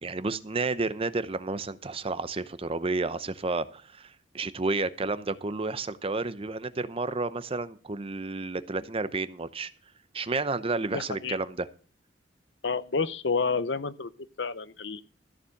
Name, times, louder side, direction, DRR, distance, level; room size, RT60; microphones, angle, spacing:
voice 1, 0.0-9.7 10.1-11.7, right 3 dB, 30° right, 0.7 m, -31 dB
voice 2, 10.9-11.4 12.6-14.1 14.4-15.0, left 4 dB, 75° left, 0.8 m, -29 dB
14.0 x 7.2 x 6.4 m
head